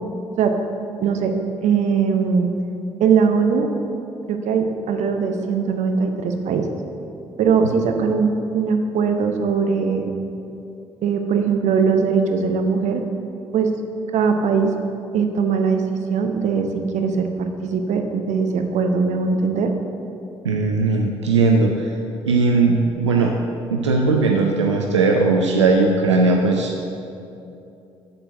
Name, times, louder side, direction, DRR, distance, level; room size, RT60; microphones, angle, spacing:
voice 1, 1.0-1.3 1.6-2.5 3.0-3.7 4.3-6.7 7.4-10.1 11.0-13.0 13.5-13.7 14.1-14.7 15.1-15.8 16.1-17.3 17.6-19.7, right 5 dB, 55° right, 5 dB, 0.8 m, -20 dB
voice 2, 20.4-22.0 22.3-23.4 23.7-26.7, right 3 dB, 90° right, 1 dB, 0.4 m, -18 dB
7.5 x 4.4 x 6.4 m, 2.7 s
figure-of-eight pair, 45°, 15 cm